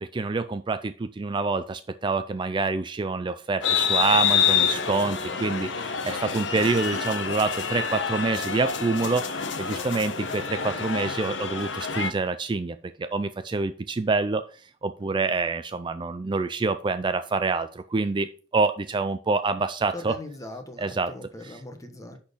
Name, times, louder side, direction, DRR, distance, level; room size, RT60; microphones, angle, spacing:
voice 1, 0.0-20.2 20.8-21.1 21.4-21.6, right 3 dB, 25° right, 11 dB, 0.4 m, -27 dB
sound 1, 3.6-12.1, left 7 dB, 75° left, 1.1 m, -27 dB
voice 2, 4.7-5.5 19.9-22.2, left 1 dB, 20° left, 6 dB, 1.1 m, -41 dB
10.5 x 4.3 x 5.1 m, 0.40 s
head